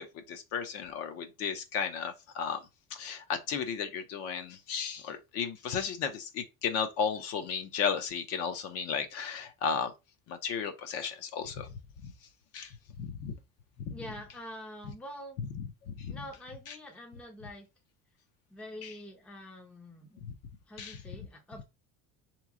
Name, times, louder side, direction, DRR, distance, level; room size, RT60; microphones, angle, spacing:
voice 1, 0.0-2.6 2.9-9.9 10.3-12.1 12.5-13.4 13.9-14.0 15.6-16.2 16.7-16.8 18.8-18.9 20.8-21.0, left 6 dB, 45° left, 0.6 m, -34 dB
voice 2, 13.9-15.4 16.1-17.7 18.5-20.2 20.7-21.6, equal, 5° left, 0.5 m, -45 dB
4.0 x 3.0 x 3.6 m
cardioid pair, 175°, 33 cm